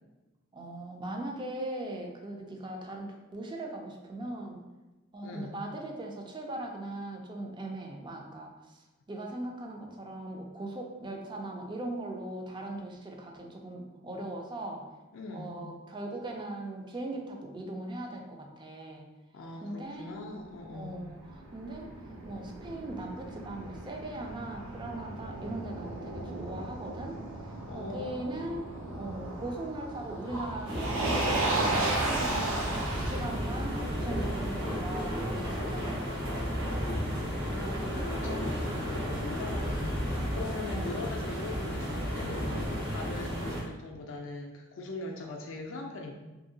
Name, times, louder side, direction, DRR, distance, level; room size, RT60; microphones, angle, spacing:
voice 1, 0.5-4.6 5.1-14.9 15.3-19.1 19.6-20.1 20.7-27.2 27.7-28.7 29.0-32.7 32.9-36.3 40.7-41.0, right 1 dB, 20° right, 1 dB, 0.4 m, -39 dB
voice 2, 5.2-5.6 13.7-13.8 15.1-15.6 19.3-21.1 27.7-28.4 37.2-46.1, left 2 dB, 65° left, 1 dB, 0.4 m, -41 dB
Motor vehicle (road), 20.7-35.8, right 2 dB, 75° right, 0.6 m, -35 dB
sound 1, 30.7-43.6, equal, 60° right, 1.1 m, -33 dB
2.7 x 2.7 x 2.6 m, 1.1 s
head